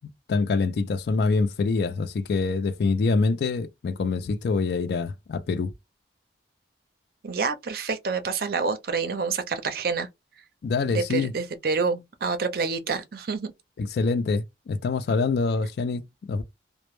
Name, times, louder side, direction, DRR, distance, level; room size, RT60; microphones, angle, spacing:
voice 1, 0.3-5.7 10.6-11.3 13.8-16.0 16.3-16.4, left 4 dB, 65° left, 0.3 m, -25 dB
voice 2, 7.2-10.1 10.9-13.5, right 4 dB, 55° right, 0.4 m, -28 dB
2.1 x 2.0 x 2.9 m
head